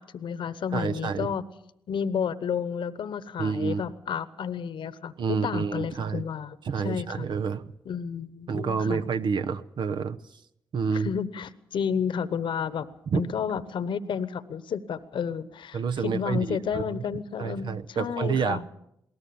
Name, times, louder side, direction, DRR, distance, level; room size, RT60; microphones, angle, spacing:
voice 1, 0.0-1.4 1.9-6.6 6.8-7.3 7.8-9.0 10.9-18.7, left 7 dB, 70° left, 15 dB, 1.0 m, -31 dB
voice 2, 0.7-1.3 3.4-3.8 5.2-6.2 6.6-7.7 8.5-10.2 10.7-11.1 13.1-13.2 15.7-17.0 17.4-18.6, right 5 dB, 65° right, 10 dB, 0.8 m, -28 dB
21.0 x 18.0 x 7.0 m, 0.76 s
supercardioid pair, 45°, 9 cm